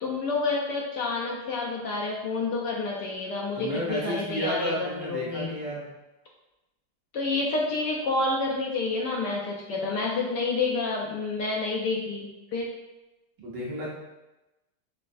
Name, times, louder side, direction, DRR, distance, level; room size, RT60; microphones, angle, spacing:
voice 1, 0.0-5.5 7.1-12.7, left 3 dB, 75° left, -2 dB, 0.9 m, -29 dB
voice 2, 3.6-5.9 13.4-13.9, equal, 60° right, -6 dB, 1.4 m, -32 dB
5.1 x 2.4 x 2.5 m, 1.0 s
omnidirectional pair, 2.4 m